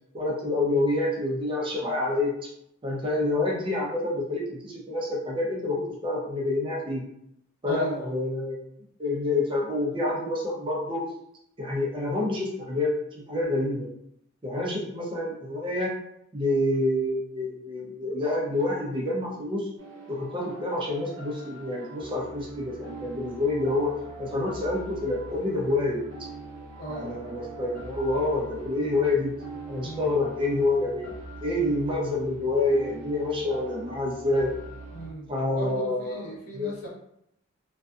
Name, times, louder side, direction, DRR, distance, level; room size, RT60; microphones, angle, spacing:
voice 1, 0.1-2.3 2.8-7.0 7.6-8.6 9.0-11.0 11.6-13.9 14.4-15.9 16.3-19.7 20.1-23.9 24.2-26.0 26.9-29.3 29.7-31.1 31.4-34.5 35.3-36.3 36.5-36.7, left 2 dB, 25° right, -3 dB, 0.5 m, -27 dB
voice 2, 7.7-8.1 14.6-14.9 26.8-27.1 29.8-30.1 34.9-36.9, right 1 dB, 60° left, -5 dB, 0.9 m, -37 dB
sound 1, 19.8-35.1, right 2 dB, 70° right, 0.8 m, -43 dB
2.5 x 2.4 x 2.3 m, 0.76 s
head